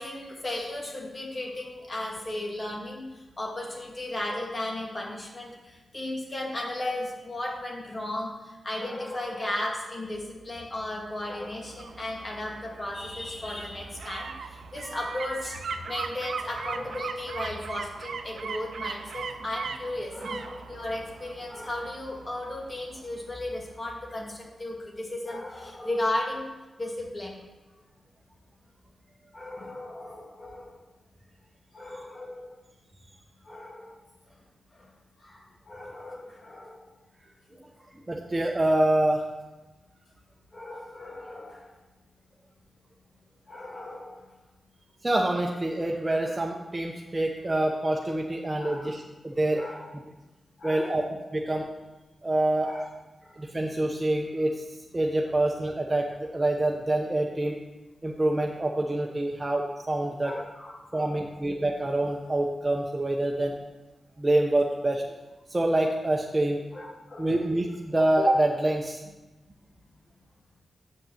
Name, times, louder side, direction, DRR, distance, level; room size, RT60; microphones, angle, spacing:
voice 1, 0.0-15.6 15.9-26.5 26.8-27.5 29.3-30.8 31.7-32.6 33.4-34.0 34.8-34.9 35.2-36.8 40.5-41.7 43.5-44.3 48.6-48.9 49.6-49.9 50.6-51.0 52.6-52.8 53.2-53.4 60.2-61.2 66.7-67.4, left 1 dB, 35° left, -1 dB, 2.2 m, -35 dB
sound 1, 11.1-24.0 24.3-24.4, right 5 dB, 80° right, 0.4 m, -39 dB
voice 2, 38.1-39.2 45.0-49.6 50.6-51.0 51.3-51.7 52.2-52.7 53.4-54.6 54.9-57.6 58.0-60.3 60.9-63.5 64.2-65.0 65.5-66.6 67.2-69.0, right 1 dB, 25° right, 0 dB, 0.8 m, -26 dB
7.0 x 5.4 x 7.2 m, 1.1 s
cardioid pair, 65°, 0 cm